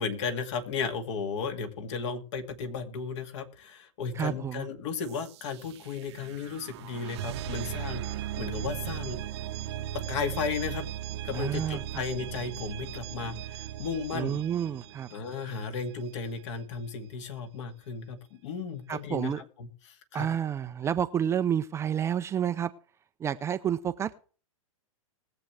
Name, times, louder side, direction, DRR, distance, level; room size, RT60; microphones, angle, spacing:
voice 1, 0.0-9.2 10.1-10.9 11.2-14.4 15.1-19.3 19.6-20.3, left 5 dB, 55° left, 6 dB, 2.3 m, -35 dB
voice 2, 4.1-4.7 11.3-12.0 14.1-15.1 18.9-19.4 20.1-22.7 23.2-24.2, right 9 dB, 15° right, 10 dB, 0.5 m, -30 dB
sound 1, 5.0-15.8, right 12 dB, 50° right, 0.9 m, -38 dB
20.5 x 7.8 x 3.4 m, 0.40 s
hypercardioid pair, 130°, 18 cm